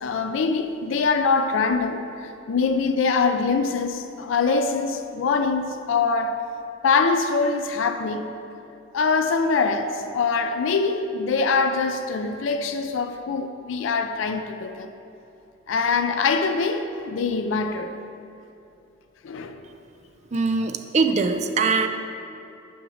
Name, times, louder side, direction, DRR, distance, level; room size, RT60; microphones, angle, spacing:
voice 1, 0.0-6.4 6.8-8.2 8.9-14.9 15.7-17.9 19.2-19.6 20.9-21.0, left 4 dB, 75° left, 7 dB, 0.4 m, -23 dB
voice 2, 20.3-21.9, right 4 dB, 35° right, 7 dB, 0.4 m, -22 dB
6.0 x 5.0 x 6.2 m, 2.8 s
head